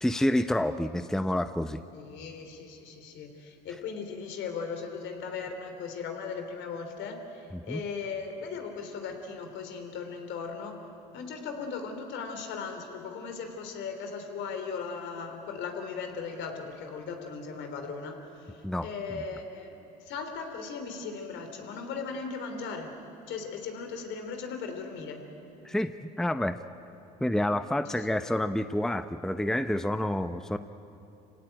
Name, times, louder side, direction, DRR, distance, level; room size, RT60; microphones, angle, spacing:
voice 1, 0.0-1.8 7.5-7.8 18.6-19.2 25.6-26.6 27.2-30.6, left 1 dB, ahead, 11 dB, 0.7 m, -28 dB
voice 2, 1.9-10.7 11.1-19.8 20.0-22.9 23.3-25.2, left 5 dB, 65° left, 5 dB, 3.4 m, -38 dB
27.5 x 17.0 x 9.0 m, 2.8 s
hypercardioid pair, 70°, 21 cm